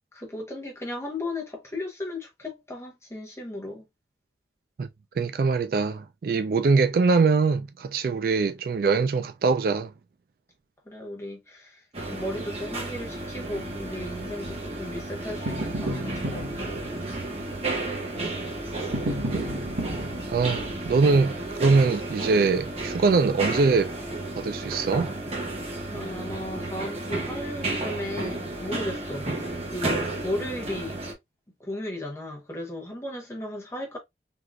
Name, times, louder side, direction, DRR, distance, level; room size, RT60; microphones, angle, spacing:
voice 1, 0.1-3.8 8.0-8.2 10.9-17.2 25.9-31.0 31.6-34.0, left 1 dB, 15° left, 1.0 m, -36 dB
voice 2, 5.2-9.9 18.2-18.4 20.3-23.9 24.4-25.1, right 4 dB, 50° right, 0.3 m, -23 dB
sound 1, 11.9-31.1, right 2 dB, 35° right, 1.1 m, -33 dB
sound 2, 13.5-21.5, right 1 dB, 75° right, 1.1 m, -35 dB
3.6 x 2.8 x 2.3 m
head